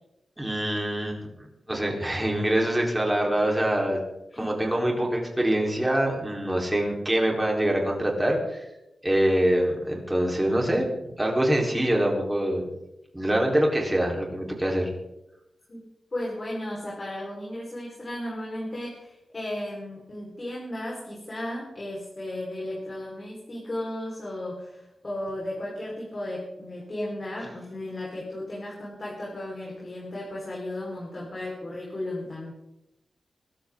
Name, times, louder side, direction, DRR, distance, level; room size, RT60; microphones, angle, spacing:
voice 1, 0.4-4.0 4.4-8.7 9.0-12.7 13.1-14.9, right 1 dB, 10° right, 0 dB, 4.6 m, -25 dB
voice 2, 16.1-32.5, left 1 dB, 40° left, -4 dB, 5.2 m, -35 dB
23.5 x 12.5 x 4.0 m, 0.90 s
wide cardioid pair, 80°, 0 cm